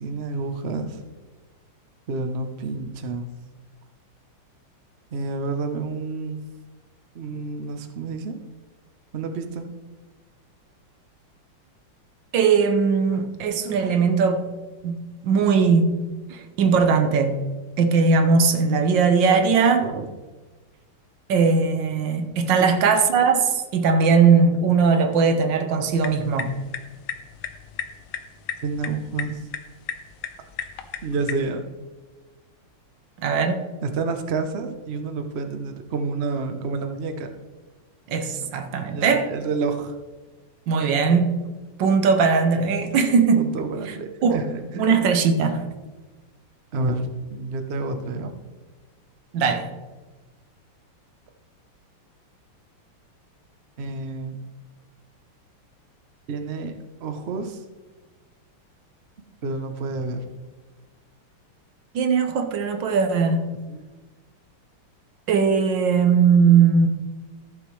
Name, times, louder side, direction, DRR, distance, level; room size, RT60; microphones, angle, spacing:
voice 1, 0.0-1.0 2.1-3.3 5.1-6.4 7.1-8.4 9.1-9.7 19.8-20.1 22.5-22.6 28.6-29.5 31.0-31.6 33.8-37.3 38.8-39.9 43.3-44.9 46.7-48.3 53.8-54.4 56.3-57.6 59.4-60.2 63.7-63.8, right 3 dB, 90° right, 0.5 m, -29 dB
voice 2, 12.3-14.5 14.8-16.0 16.3-17.5 17.8-19.9 21.3-26.5 33.2-33.7 38.1-39.3 40.7-41.4 41.8-43.6 44.2-44.5 44.7-45.7 49.3-49.7 61.9-63.5 65.3-66.9, right 5 dB, 65° right, 1.5 m, -19 dB
sound 1, 25.8-31.5, left 9 dB, 75° left, 1.6 m, -36 dB
14.5 x 7.0 x 3.2 m
omnidirectional pair, 2.4 m